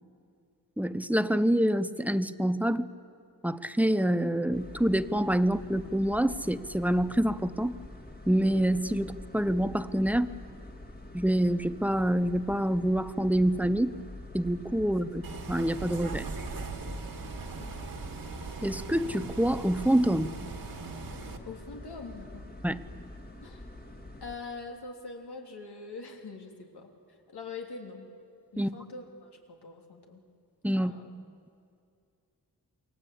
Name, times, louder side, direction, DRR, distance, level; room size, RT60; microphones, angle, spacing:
voice 1, 0.8-2.9 3.4-7.7 8.3-10.3 11.1-13.9 14.3-15.2 15.5-16.3 18.6-20.3 22.6-22.8 28.6-28.7 30.6-30.9, right 1 dB, 5° right, 12 dB, 0.6 m, -26 dB
sound 1, 4.5-24.4, left 1 dB, 25° left, 1.9 m, -46 dB
Bus, 15.2-21.4, right 4 dB, 60° right, 1.9 m, -40 dB
voice 2, 17.6-17.9 21.5-22.4 23.4-23.7 24.2-28.1 28.5-30.2 30.7-31.1, left 4 dB, 85° left, 1 dB, 3.5 m, -44 dB
28.5 x 24.0 x 8.6 m, 2.4 s
wide cardioid pair, 175°, 39 cm